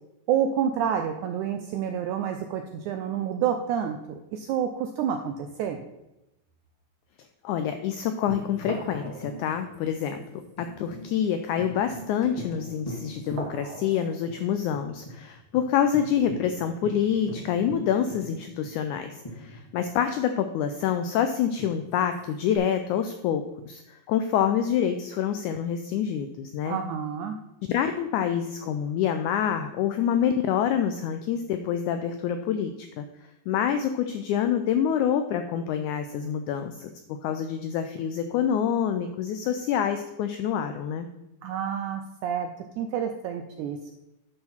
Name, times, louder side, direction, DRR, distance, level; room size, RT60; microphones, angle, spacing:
voice 1, 0.3-5.8 26.6-27.4 41.4-42.5 42.8-43.9, right 8 dB, 85° right, 6 dB, 1.7 m, -29 dB
sound 1, 4.7-5.9 6.4-6.7 7.5-7.7 8.6-12.2 12.7-12.9 13.3-16.8 17.5-17.6, right 3 dB, 50° right, 1.7 m, -45 dB
voice 2, 7.4-10.2 10.6-26.8 27.7-33.0 33.5-36.9 37.2-41.1, left 9 dB, 90° left, 8 dB, 1.7 m, -27 dB
Tambourine, 8.3-14.0 14.3-14.4 14.7-15.2 15.5-15.6 15.9-20.1 21.6-22.6, equal, 25° left, 0.8 m, -42 dB
10.5 x 5.7 x 4.3 m, 0.93 s
omnidirectional pair, 4.0 m